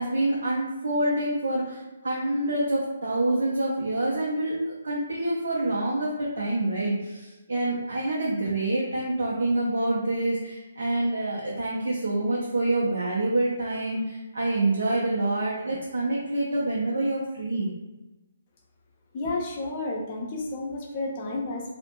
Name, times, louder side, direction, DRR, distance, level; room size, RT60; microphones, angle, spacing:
voice 1, 0.0-17.7, right 2 dB, 65° right, -5 dB, 0.5 m, -27 dB
voice 2, 19.1-21.7, left 2 dB, 35° left, -1 dB, 0.5 m, -31 dB
2.4 x 2.1 x 2.8 m, 1.1 s
figure-of-eight pair, 140°, 0 cm